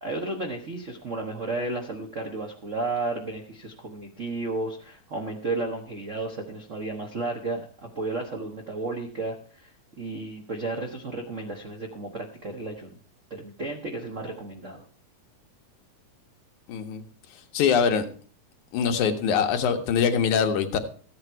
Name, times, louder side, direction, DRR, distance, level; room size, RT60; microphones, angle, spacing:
voice 1, 0.0-13.0 13.3-14.8, right 2 dB, 65° right, 3 dB, 0.7 m, -33 dB
voice 2, 16.7-17.0 17.5-18.1 18.7-20.8, left 7 dB, 90° left, 6 dB, 2.6 m, -23 dB
15.0 x 8.8 x 4.6 m, 0.43 s
omnidirectional pair, 3.4 m